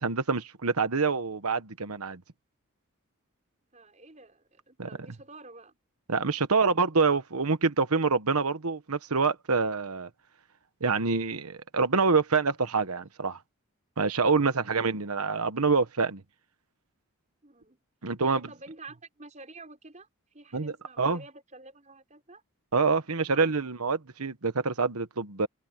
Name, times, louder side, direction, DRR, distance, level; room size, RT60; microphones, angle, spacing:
voice 1, 0.0-2.2 4.8-4.9 6.1-10.1 10.8-13.4 14.0-16.2 18.0-18.4 20.5-21.2 22.7-25.5, right 4 dB, 80° right, 1.2 m, -26 dB
voice 2, 3.7-5.8 14.4-14.7 17.4-17.8 18.2-22.4 23.3-23.5, right 3 dB, 35° right, 5.1 m, -49 dB
head